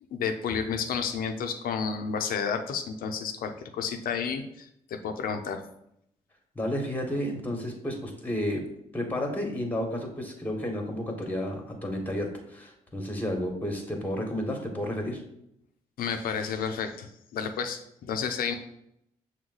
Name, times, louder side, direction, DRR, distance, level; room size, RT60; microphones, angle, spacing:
voice 1, 0.1-5.6 16.0-18.5, left 6 dB, 70° left, 6 dB, 0.6 m, -31 dB
voice 2, 6.5-8.7 8.9-15.2, left 1 dB, 10° left, 3 dB, 1.3 m, -31 dB
6.0 x 2.2 x 3.9 m, 0.76 s
supercardioid pair, 55°, 16 cm